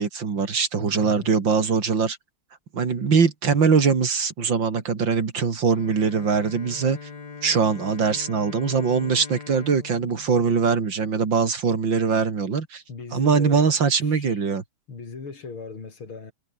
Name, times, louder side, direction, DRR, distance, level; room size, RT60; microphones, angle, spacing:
voice 1, 0.0-2.2 2.7-7.0 7.4-12.8 13.1-14.6, right 5 dB, 65° right, 3.2 m, -22 dB
voice 2, 0.8-1.3 12.9-13.7 14.0-14.4 14.9-16.3, left 4 dB, 85° left, 4.5 m, -38 dB
Bowed string instrument, 5.7-11.4, left 5 dB, 55° left, 3.3 m, -42 dB
omnidirectional pair, 2.2 m